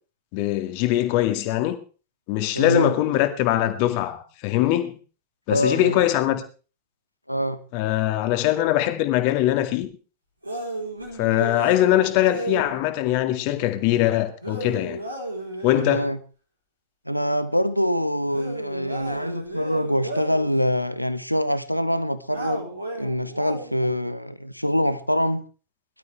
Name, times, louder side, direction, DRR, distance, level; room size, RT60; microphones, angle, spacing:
voice 1, 0.3-1.8 2.3-5.0 5.5-6.4 7.7-9.9 11.2-15.0 15.6-16.1, left 14 dB, 45° left, 2.0 m, -22 dB
voice 2, 2.5-3.0 5.5-6.0 7.3-7.6 15.7-16.2 17.1-25.4, equal, 90° left, 1.0 m, -24 dB
sound 1, 10.4-12.8 14.4-16.1 18.3-20.5 22.3-23.8, right 1 dB, 85° right, 3.9 m, -33 dB
22.0 x 12.5 x 3.4 m
figure-of-eight pair, 90°, 0 cm